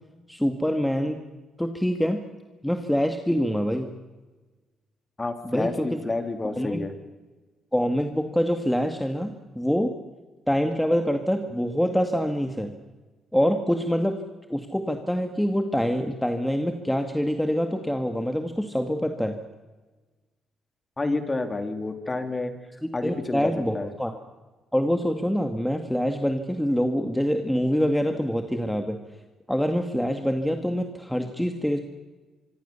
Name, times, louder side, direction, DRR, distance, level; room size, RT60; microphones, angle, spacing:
voice 1, 0.3-1.2 1.6-2.2 2.6-3.9 5.4-6.0 6.6-6.8 7.7-10.0 10.5-12.7 13.3-14.2 14.5-19.4 22.8-24.1 24.7-29.0 29.5-31.8, equal, 5° left, 5 dB, 2.1 m, -25 dB
voice 2, 5.2-6.9 21.0-22.5 22.9-23.9, left 2 dB, 25° left, 7 dB, 3.5 m, -29 dB
25.5 x 24.0 x 7.1 m, 1.2 s
cardioid pair, 90°, 0 cm